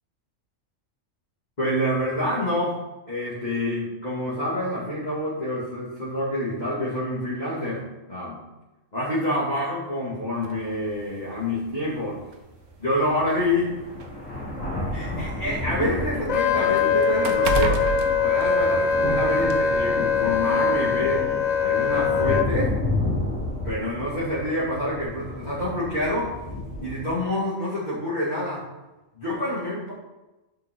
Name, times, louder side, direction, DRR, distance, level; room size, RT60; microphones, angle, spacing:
voice 1, 1.6-2.7 3.1-7.8 8.1-8.4 8.9-12.1 12.8-13.7 14.9-17.8 18.2-21.3 21.6-22.7 23.6-26.3 26.8-28.6 29.1-29.9, left 1 dB, 30° left, -10 dB, 2.9 m, -27 dB
sound 1, 10.4-10.6 11.7-11.8 12.2-12.3 13.3-15.3 15.6-19.1 19.5-19.6, right 4 dB, 70° right, 1.2 m, -31 dB
sound 2, 10.6-10.7 11.3-11.4 12.7-12.8 13.1-27.1, left 1 dB, 65° left, 3.5 m, -32 dB
Wind instrument woodwind instrument, 16.3-22.5, left 6 dB, 80° left, 0.3 m, -22 dB
11.0 x 5.8 x 3.9 m, 1.0 s
omnidirectional pair, 1.4 m